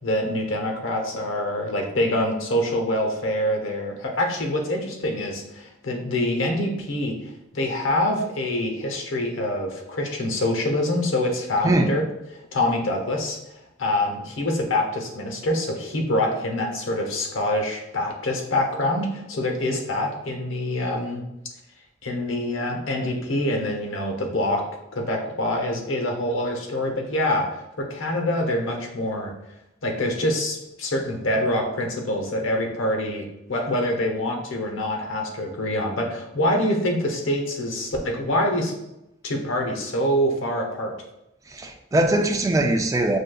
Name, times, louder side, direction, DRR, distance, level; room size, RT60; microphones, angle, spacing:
voice 1, 0.0-7.2 7.5-12.0 12.5-13.4 13.8-21.2 22.0-24.6 24.9-27.5 27.8-29.3 29.8-38.7 39.2-40.9, left 1 dB, 85° left, 2 dB, 0.8 m, -25 dB
voice 2, 41.5-43.2, right 1 dB, 15° right, 4 dB, 0.3 m, -21 dB
6.2 x 2.7 x 2.3 m, 0.87 s
head